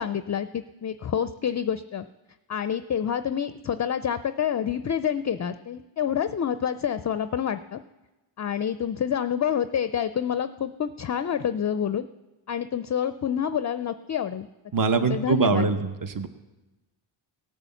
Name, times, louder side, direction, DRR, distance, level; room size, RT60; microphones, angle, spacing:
voice 1, 0.0-2.1 2.5-7.8 8.4-12.1 12.5-14.5 14.9-15.7, left 8 dB, 35° left, 12 dB, 0.4 m, -28 dB
voice 2, 14.7-16.3, right 5 dB, 40° right, 9 dB, 1.0 m, -23 dB
17.0 x 6.8 x 7.1 m, 1.1 s
cardioid pair, 50°, 49 cm